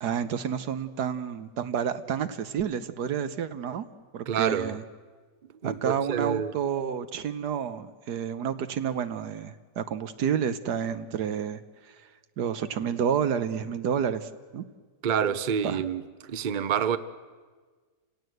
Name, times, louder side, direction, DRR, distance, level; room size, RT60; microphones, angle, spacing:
voice 1, 0.0-3.8 4.1-4.8 5.6-11.6 12.4-14.6 15.6-15.8, right 8 dB, 75° right, 1.5 m, -30 dB
voice 2, 4.3-4.8 5.6-6.5 15.0-17.0, right 8 dB, 40° right, 0.7 m, -28 dB
29.0 x 17.5 x 7.9 m
omnidirectional pair, 1.8 m